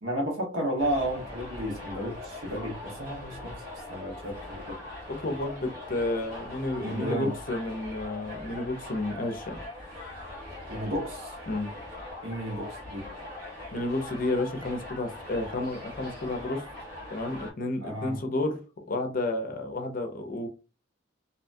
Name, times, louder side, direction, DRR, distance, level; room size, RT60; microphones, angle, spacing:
voice 1, 0.0-3.5 3.9-4.8 6.8-7.3 10.7-11.5 12.2-13.1 17.8-18.2, equal, 80° right, 1.2 m, -32 dB
Subway metro underground, 0.8-17.5, left 2 dB, 55° right, 1.5 m, -41 dB
voice 2, 5.1-9.6 11.5-11.7 13.7-16.6 17.1-18.6 18.9-20.5, left 2 dB, 45° left, 0.5 m, -31 dB
2.7 x 2.2 x 2.5 m
head